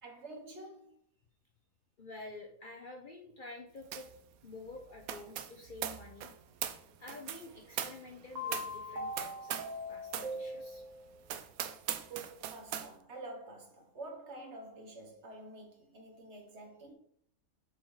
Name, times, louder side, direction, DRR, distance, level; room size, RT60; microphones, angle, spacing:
voice 1, 0.0-1.0 12.1-16.9, right 2 dB, 55° right, 1.5 m, -48 dB
voice 2, 2.0-4.1 4.4-6.3 7.0-10.8, left 2 dB, 45° left, 0.7 m, -49 dB
sound 1, 3.9-4.2 4.4-9.8 10.1-10.4 10.8-10.9 11.3-12.9, right 10 dB, 85° right, 1.0 m, -40 dB
sound 2, 8.3-11.2, left 1 dB, 35° right, 1.0 m, -41 dB
7.5 x 4.7 x 3.2 m
omnidirectional pair, 1.5 m